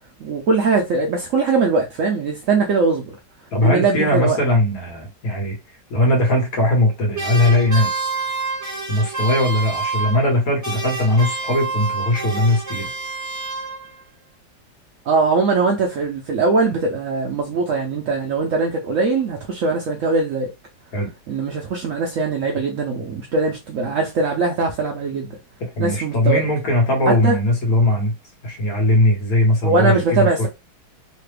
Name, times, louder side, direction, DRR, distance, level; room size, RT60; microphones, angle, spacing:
voice 1, 0.2-3.1 3.6-4.4 15.1-20.5 21.3-25.3 25.8-26.4 27.1-27.4 29.6-30.5, right 4 dB, 70° right, 0.8 m, -21 dB
voice 2, 3.5-5.6 5.9-8.2 8.9-12.9 20.9-21.1 25.8-28.1 28.4-30.5, left 1 dB, 55° left, 1.4 m, -19 dB
sound 1, 7.1-10.4 10.6-14.0, right 4 dB, 15° right, 0.6 m, -28 dB
3.2 x 2.2 x 3.2 m
omnidirectional pair, 1.8 m